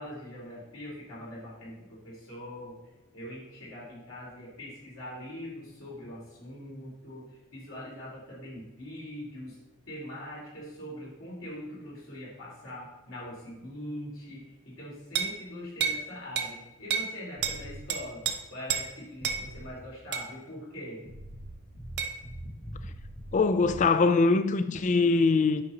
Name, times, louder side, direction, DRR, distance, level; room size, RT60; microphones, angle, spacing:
voice 1, 0.0-2.8 3.1-9.6 9.9-18.2 18.5-21.0, left 1 dB, 65° left, 3.0 m, -42 dB
sound 1, 15.1-15.4 15.8-16.0 16.4-16.5 16.9-17.1 17.4-17.6 17.9-18.3 18.7-18.9 19.2-19.4 20.1-20.3 22.0-22.1, right 7 dB, 50° right, 0.8 m, -29 dB
sound 2, 17.4-17.8 19.2-19.7 21.1-23.8, equal, 85° left, 1.8 m, -42 dB
voice 2, 23.3-25.6, left 4 dB, 35° left, 0.3 m, -23 dB
8.8 x 5.6 x 3.8 m
head